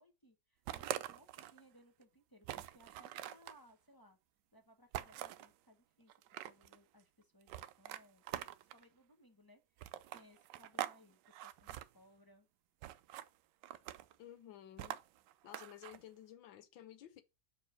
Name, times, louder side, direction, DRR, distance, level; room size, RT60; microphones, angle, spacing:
voice 1, 0.0-4.2 4.5-6.1 6.4-12.5, equal, 15° left, 0.9 m, -65 dB
sound 1, 0.7-1.6 2.0-2.1 2.4-3.6 4.9-5.5 6.1-6.8 7.5-8.8 9.8-11.0 11.3-11.9 12.8-13.3 13.6-14.2 14.8-16.0, right 13 dB, 75° right, 1.1 m, -44 dB
voice 2, 14.2-15.0 15.4-17.2, left 11 dB, 70° left, 1.5 m, -54 dB
5.6 x 4.7 x 6.3 m
omnidirectional pair, 2.2 m